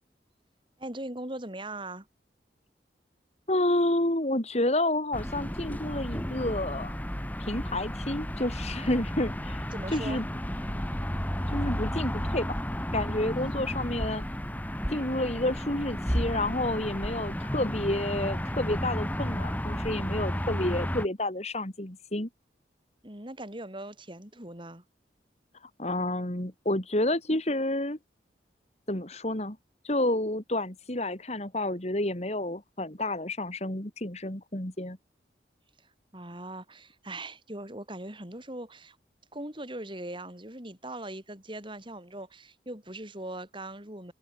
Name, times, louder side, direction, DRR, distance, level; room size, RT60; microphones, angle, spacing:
voice 1, 0.8-2.1 9.7-10.2 23.0-24.8 36.1-39.0 39.3-44.1, right 1 dB, 30° right, 5.9 m, -40 dB
voice 2, 3.5-6.9 7.4-9.6 9.9-10.2 11.5-12.5 12.9-14.2 14.9-22.3 25.8-28.0 28.9-29.6 29.8-35.0, left 1 dB, 40° left, 3.1 m, -30 dB
sound 1, 5.1-21.1, equal, 10° left, 3.5 m, -32 dB
head